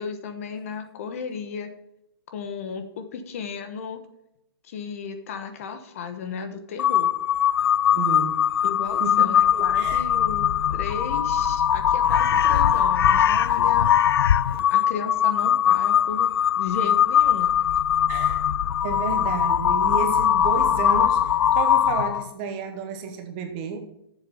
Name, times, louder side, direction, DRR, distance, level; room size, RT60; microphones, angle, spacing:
voice 1, 0.0-1.7 2.3-4.0 4.6-7.1 8.6-13.9 14.7-16.3 16.6-17.5, left 6 dB, 35° left, 8 dB, 1.0 m, -34 dB
Crow, 6.8-22.3, left 9 dB, 75° left, 0.4 m, -21 dB
voice 2, 7.9-8.4 9.0-10.0 15.0-15.1 18.1-18.4 18.8-23.9, right 5 dB, 25° right, 6 dB, 1.0 m, -31 dB
7.4 x 7.4 x 6.7 m, 0.82 s
hypercardioid pair, 170°, 13 cm